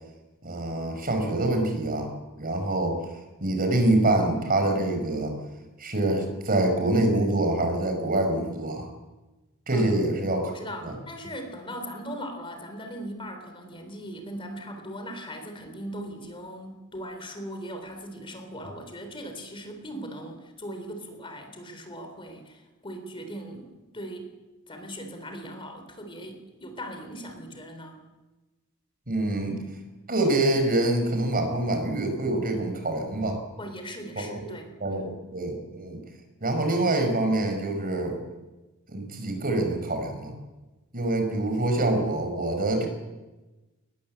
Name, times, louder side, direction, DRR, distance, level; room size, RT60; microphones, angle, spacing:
voice 1, 0.4-2.1 2.4-3.1 3.4-5.3 5.8-8.9 9.7-10.5 10.8-10.9 29.1-29.6 30.1-33.4 34.4-34.5 34.8-36.0 36.4-38.2 38.9-40.3 40.9-42.9, right 2 dB, 40° right, 5 dB, 5.2 m, -25 dB
voice 2, 10.4-24.3 24.7-28.0 33.6-35.1, equal, 25° left, 6 dB, 3.6 m, -39 dB
22.5 x 20.5 x 7.7 m, 1.1 s
head